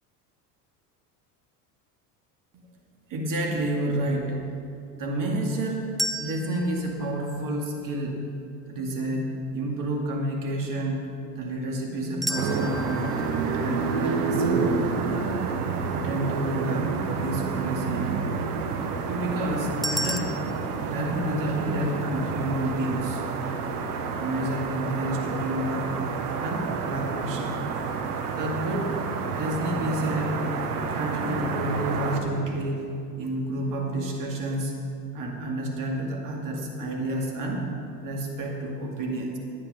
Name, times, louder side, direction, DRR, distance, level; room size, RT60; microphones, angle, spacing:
voice 1, 3.1-4.5 5.0-5.8 6.2-8.2 8.7-11.1 11.4-13.1 13.6-14.7 15.9-18.1 19.1-20.4 20.8-23.2 24.1-26.0 26.4-27.6 28.3-29.0 29.3-30.5 30.9-32.9 33.2-37.7 38.0-39.4, right 1 dB, 45° right, 0 dB, 2.4 m, -30 dB
sound 1, 6.0-8.1 12.2-15.3 19.8-20.2, equal, ahead, 0.5 m, -34 dB
sound 2, 12.3-32.2, right 5 dB, 75° right, 1.2 m, -29 dB
10.5 x 8.9 x 5.4 m, 2.5 s
hypercardioid pair, 80°, 46 cm